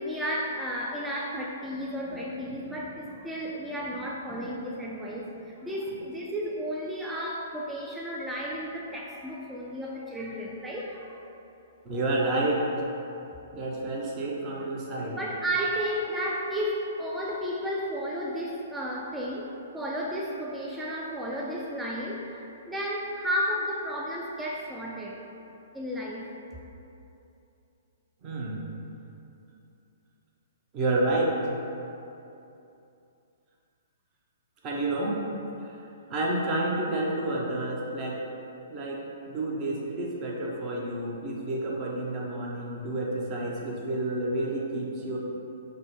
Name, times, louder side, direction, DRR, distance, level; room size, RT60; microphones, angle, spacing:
voice 1, 0.0-11.2 15.0-25.2 25.7-26.3, equal, 5° right, -4 dB, 0.3 m, -33 dB
voice 2, 11.8-12.6 13.5-15.2 28.2-28.6 30.7-31.3 34.6-35.1 35.7-35.8 36.1-38.2 38.7-45.2, right 2 dB, 30° right, -3 dB, 0.7 m, -29 dB
3.7 x 2.1 x 4.1 m, 2.8 s
hypercardioid pair, 130°, 0 cm